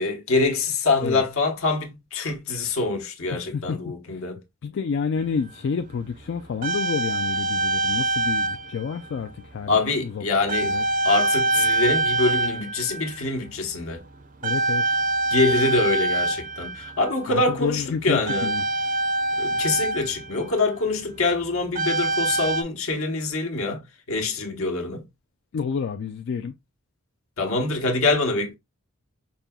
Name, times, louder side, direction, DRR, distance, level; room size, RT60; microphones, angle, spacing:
voice 1, 0.0-4.4 9.7-10.8 11.0-14.0 15.3-18.5 19.4-23.8 24.1-25.0 27.4-28.5, left 3 dB, 75° left, 1.0 m, -25 dB
voice 2, 3.3-3.8 4.1-4.2 4.6-10.2 10.6-10.8 14.4-15.0 17.3-18.6 25.5-26.5, left 6 dB, 55° left, 0.3 m, -29 dB
sound 1, 5.2-5.3 6.2-8.8 9.0-9.3 10.5-13.2 13.5-13.9 14.4-17.1 18.3-20.6 21.8-22.6, right 2 dB, 40° right, 0.5 m, -25 dB
5.3 x 2.7 x 2.2 m
head